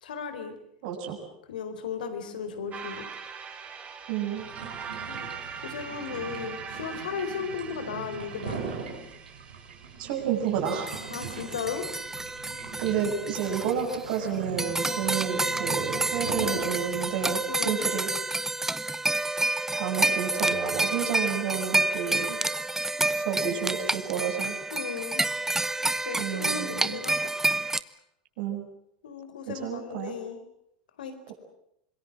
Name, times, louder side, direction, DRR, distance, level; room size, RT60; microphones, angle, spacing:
voice 1, 0.0-0.5 1.5-3.1 5.1-8.6 11.1-11.9 17.5-17.9 24.7-25.2 26.0-27.4 29.0-30.4 31.0-31.3, left 6 dB, 75° left, 9 dB, 4.4 m, -36 dB
voice 2, 0.8-1.2 4.1-4.5 10.0-10.9 12.8-18.1 19.7-22.4 23.2-24.6 26.2-27.0 28.4-28.7 29.5-30.1, right 8 dB, 65° right, 2 dB, 7.8 m, -30 dB
sound 1, 2.7-11.2, right 7 dB, 30° right, 5.1 m, -42 dB
sound 2, 4.4-17.5, right 5 dB, 85° right, 6.6 m, -41 dB
sound 3, 10.7-14.3 14.6-27.8, right 2 dB, 10° right, 1.0 m, -29 dB
26.0 x 22.0 x 7.6 m, 0.76 s
hypercardioid pair, 90°, 5 cm